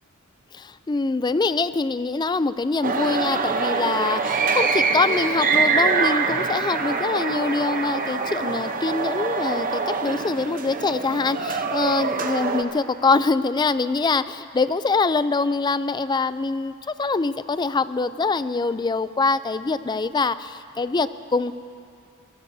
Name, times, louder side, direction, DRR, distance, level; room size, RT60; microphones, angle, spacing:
voice 1, 0.5-21.5, left 3 dB, 20° left, 14 dB, 0.4 m, -24 dB
sound 1, 2.8-12.6, right 4 dB, 40° right, 0.8 m, -24 dB
26.0 x 20.0 x 2.7 m, 2.4 s
head